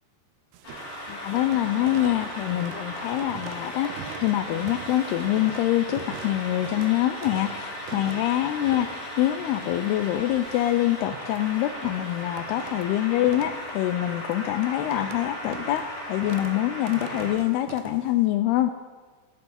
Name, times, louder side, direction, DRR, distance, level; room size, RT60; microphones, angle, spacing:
sound 1, 0.5-18.3, right 10 dB, 75° right, 2.5 m, -43 dB
sound 2, 0.6-17.3, left 1 dB, 40° left, 4.6 m, -37 dB
voice 1, 1.1-8.9 9.2-18.7, left 14 dB, 85° left, 9 dB, 2.3 m, -25 dB
15.5 x 14.5 x 4.2 m, 1.5 s
omnidirectional pair, 5.1 m